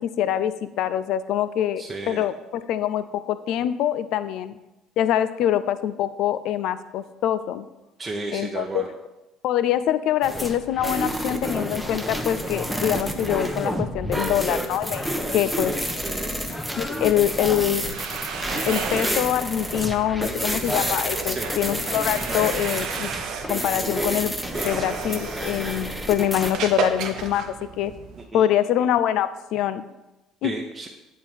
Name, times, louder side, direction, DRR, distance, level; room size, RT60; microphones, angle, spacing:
voice 1, 0.2-4.6 5.0-7.6 8.3-8.8 9.4-15.0 15.3-15.7 16.8-17.8 18.7-23.1 23.5-27.4 27.8-27.9 28.3-29.8 30.4-30.5, left 11 dB, 65° left, 14 dB, 0.4 m, -24 dB
voice 2, 1.8-2.2 8.0-8.9 16.0-16.3 21.2-21.5 28.3-28.5 30.4-30.9, right 3 dB, 25° right, 0 dB, 0.8 m, -33 dB
sound 1, 10.2-26.5, equal, ahead, 0.9 m, -29 dB
sound 2, 17.6-28.3, right 6 dB, 65° right, 0.7 m, -33 dB
8.5 x 3.7 x 4.5 m, 1.0 s
hypercardioid pair, 65°, 0 cm